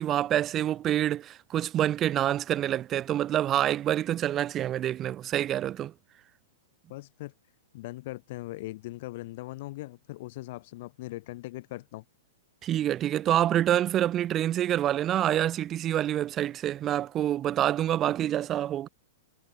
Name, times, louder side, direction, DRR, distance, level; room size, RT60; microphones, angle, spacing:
voice 1, 0.0-5.9 12.6-18.9, right 12 dB, 30° right, 0.8 m, -27 dB
voice 2, 6.9-7.3 7.7-12.0, left 18 dB, 50° left, 2.3 m, -40 dB
figure-of-eight pair, 105°, 0 cm